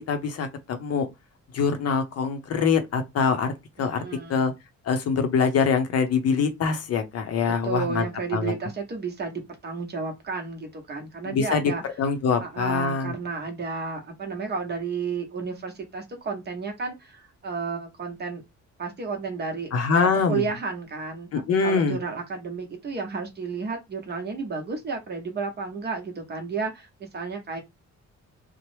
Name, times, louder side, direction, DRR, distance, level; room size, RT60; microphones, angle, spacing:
voice 1, 0.1-1.1 1.5-3.5 3.8-4.0 4.3-4.5 4.9-8.1 8.3-8.5 11.3-11.6 12.0-13.1 19.7-20.4 21.3-22.0, left 5 dB, 55° left, 0.7 m, -24 dB
voice 2, 3.8-4.4 7.5-11.8 12.4-18.4 18.8-27.6, right 4 dB, 35° right, 0.8 m, -32 dB
3.0 x 2.0 x 3.1 m
cardioid pair, 165°, 29 cm